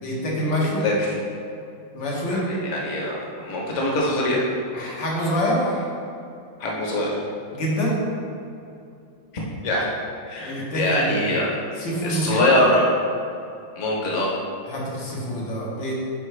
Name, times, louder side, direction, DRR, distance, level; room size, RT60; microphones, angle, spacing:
voice 1, 0.0-0.9 1.9-2.5 4.7-5.9 7.5-8.0 10.4-11.2 11.8-12.5 14.7-15.9, equal, 70° left, -4 dB, 2.0 m, -26 dB
voice 2, 0.8-1.2 2.3-4.4 6.6-7.2 9.6-9.9 10.3-11.5 12.0-12.8 13.8-14.3, left 1 dB, 45° left, -3 dB, 1.3 m, -23 dB
9.6 x 4.5 x 3.3 m, 2.6 s
omnidirectional pair, 2.1 m